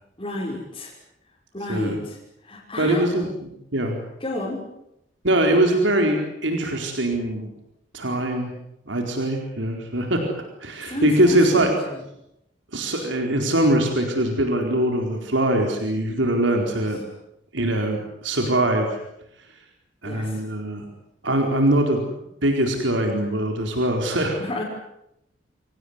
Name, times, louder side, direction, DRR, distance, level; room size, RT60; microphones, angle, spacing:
voice 1, 0.2-0.9 1.5-2.2 2.4-3.1 4.2-4.6 10.8-12.0 16.6-16.8 20.1-20.4 24.4-24.6, left 1 dB, 25° left, -6 dB, 5.9 m, -31 dB
voice 2, 2.8-4.0 5.2-7.5 7.9-8.5 8.9-10.2 10.6-11.7 12.7-17.0 17.5-18.9 20.0-20.8 21.2-22.0 22.4-24.4, right 1 dB, 90° right, 3 dB, 4.5 m, -22 dB
27.0 x 18.5 x 9.8 m, 0.83 s
head